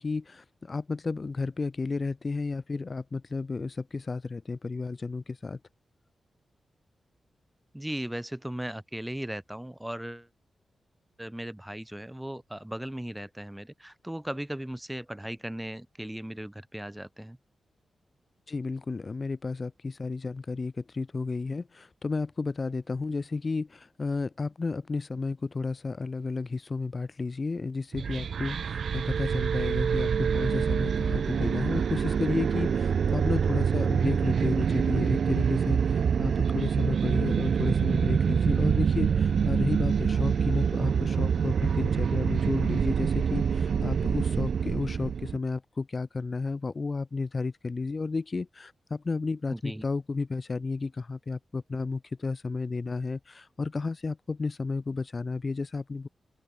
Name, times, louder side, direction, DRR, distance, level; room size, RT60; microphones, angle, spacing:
voice 1, 0.0-5.6 18.5-56.1, left 4 dB, 35° left, 5.1 m, -32 dB
voice 2, 7.7-10.3 11.2-17.4 49.5-49.8, right 1 dB, 5° right, 3.6 m, -37 dB
sound 1, 27.9-45.4, right 7 dB, 70° right, 1.2 m, -26 dB
open air
wide cardioid pair, 105°, 0 cm